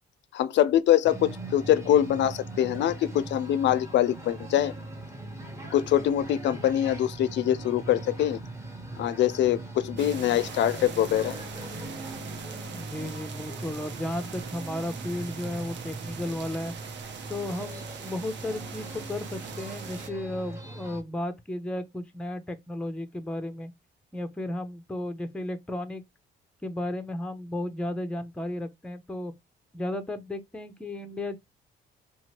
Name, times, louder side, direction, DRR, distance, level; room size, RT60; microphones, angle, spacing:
voice 1, 0.3-4.7 5.7-8.4 9.0-11.3, left 11 dB, 65° left, 0.4 m, -24 dB
Pub downstairs in the hotel room, 1.0-21.0, right 2 dB, 15° right, 0.8 m, -40 dB
sound 1, 10.0-20.1, right 7 dB, 65° right, 0.6 m, -42 dB
voice 2, 12.7-16.7 17.3-23.7 24.1-26.0 26.6-29.3 29.7-31.4, left 1 dB, 5° left, 0.4 m, -34 dB
2.8 x 2.3 x 2.9 m
cardioid pair, 90°, 20 cm